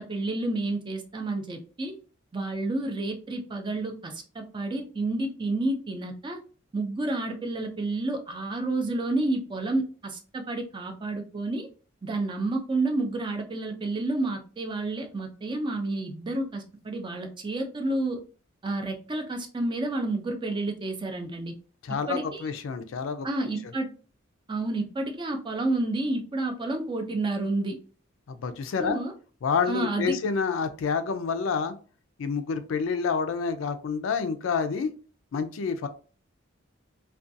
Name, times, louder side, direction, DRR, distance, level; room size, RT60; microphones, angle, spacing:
voice 1, 0.0-2.0 2.3-6.4 6.7-11.7 12.0-18.2 18.6-21.5 22.1-22.5 23.2-23.9 24.5-27.8 28.8-29.1 29.7-30.2, right 2 dB, 25° right, 5 dB, 0.4 m, -30 dB
voice 2, 21.8-23.3 28.3-29.0 29.4-31.7 32.2-34.9 35.3-35.9, left 5 dB, 75° left, 9 dB, 0.4 m, -28 dB
2.5 x 2.2 x 2.5 m, 0.39 s
head